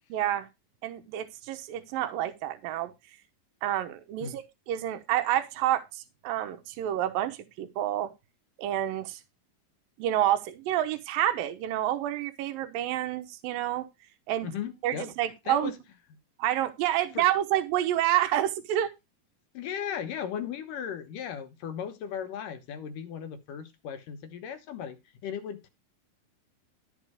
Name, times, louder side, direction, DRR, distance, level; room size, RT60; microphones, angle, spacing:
voice 1, 0.1-0.5 0.8-2.9 3.6-8.1 8.6-9.2 10.0-13.9 14.3-14.5 14.8-15.7 16.4-18.9, right 12 dB, 80° right, 2.7 m, -28 dB
voice 2, 14.4-15.1 15.5-15.8 17.1-17.2 19.5-25.0 25.2-25.7, left 8 dB, 70° left, 2.7 m, -36 dB
13.0 x 5.4 x 4.9 m
omnidirectional pair, 4.1 m